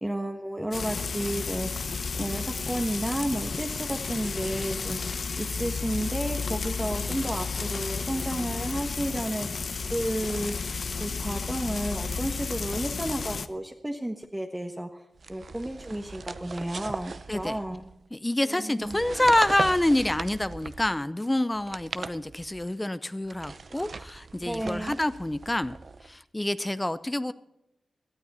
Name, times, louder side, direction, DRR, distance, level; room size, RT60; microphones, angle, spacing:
voice 1, 0.0-1.7 2.2-9.6 9.9-10.5 11.0-15.0 15.3-17.9 18.5-19.0 24.4-25.0, right 1 dB, 10° right, 4 dB, 1.3 m, -32 dB
Frying (food), 0.7-13.5, left 4 dB, 60° left, 0.8 m, -32 dB
sound 1, 2.2-6.9, left 2 dB, 35° left, 2.5 m, -52 dB
sound 2, 15.2-18.0 18.8-21.0 21.5-22.7 23.3-26.1, right 4 dB, 55° right, 0.7 m, -38 dB
voice 2, 18.1-25.7 26.0-27.3, left 1 dB, 15° left, 14 dB, 0.6 m, -27 dB
18.0 x 12.5 x 4.2 m, 0.86 s
cardioid pair, 70°, 0 cm